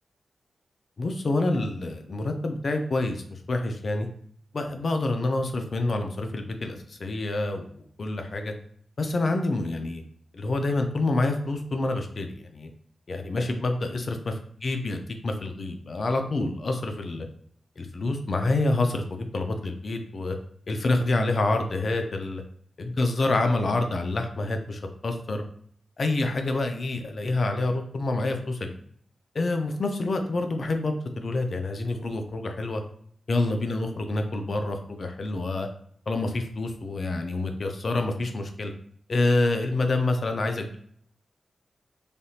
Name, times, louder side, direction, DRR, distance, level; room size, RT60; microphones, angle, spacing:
voice 1, 1.0-4.1 4.5-8.5 9.0-10.0 10.3-12.7 13.1-14.3 14.6-17.3 17.8-20.4 20.7-22.4 22.8-25.4 26.0-28.7 29.3-32.8 33.3-35.7 36.1-38.7 39.1-40.8, left 2 dB, 50° left, 5 dB, 0.4 m, -27 dB
3.3 x 2.7 x 2.4 m, 0.63 s
wide cardioid pair, 140°, 0 cm